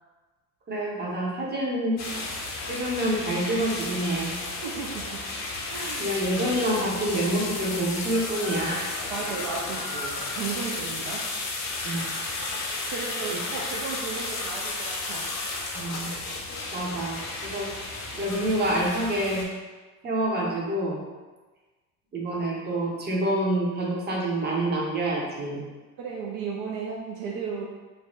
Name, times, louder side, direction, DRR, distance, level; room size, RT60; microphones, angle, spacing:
voice 1, 0.7-2.0 2.7-4.3 6.0-8.9 11.8-12.0 13.3-13.4 15.7-16.1 16.7-17.7 18.2-19.4 20.0-21.0 22.1-25.6, right 1 dB, 20° right, -3 dB, 0.8 m, -27 dB
sound 1, 2.0-19.4, left 2 dB, 35° left, 0.7 m, -33 dB
voice 2, 4.5-5.3 5.7-6.1 9.1-11.3 12.9-15.3 26.0-27.7, right 5 dB, 50° right, -2 dB, 0.5 m, -35 dB
2.6 x 2.1 x 3.1 m, 1.3 s
hypercardioid pair, 65°, 45 cm